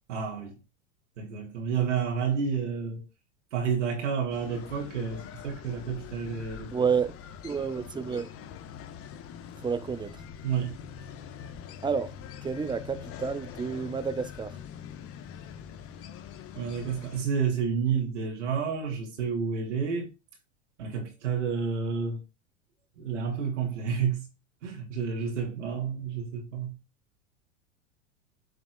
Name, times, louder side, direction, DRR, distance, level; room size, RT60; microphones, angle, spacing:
voice 1, 0.1-0.5 1.2-3.0 3.5-6.7 10.4-10.8 16.5-20.1 20.8-22.2 23.0-24.3 24.6-26.8, right 6 dB, 70° right, 2.8 m, -30 dB
sound 1, 4.3-17.2, left 8 dB, 40° left, 1.3 m, -44 dB
voice 2, 6.7-7.1 7.4-8.3 9.6-10.2 11.8-12.1 12.4-14.6, right 6 dB, 10° right, 0.9 m, -30 dB
8.7 x 6.6 x 2.4 m
hypercardioid pair, 90°, 37 cm